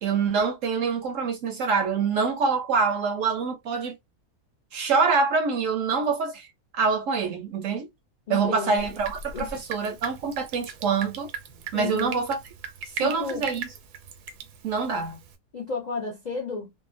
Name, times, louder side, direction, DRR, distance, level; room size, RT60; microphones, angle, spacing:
voice 1, 0.0-4.0 4.7-6.5 6.7-7.9 8.3-11.3 11.7-12.4 12.8-13.7 14.6-15.2, right 5 dB, 65° right, 0.8 m, -25 dB
voice 2, 8.3-8.8 9.3-9.6 11.7-12.2 13.0-13.4 15.5-16.7, left 4 dB, 65° left, 0.4 m, -32 dB
Drip, 8.8-15.4, right 6 dB, 85° right, 1.1 m, -39 dB
2.7 x 2.1 x 2.4 m
omnidirectional pair, 1.6 m